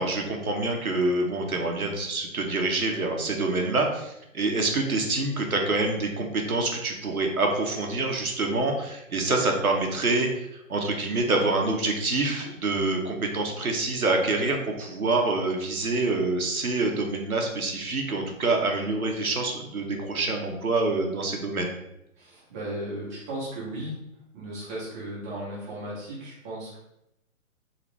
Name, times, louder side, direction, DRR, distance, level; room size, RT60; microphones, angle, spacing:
voice 1, 0.0-21.7, right 2 dB, 90° right, 2 dB, 0.9 m, -26 dB
voice 2, 22.2-24.0 24.3-26.8, right 1 dB, 15° right, -7 dB, 0.5 m, -35 dB
3.8 x 2.4 x 3.1 m, 0.83 s
figure-of-eight pair, 130°, 42 cm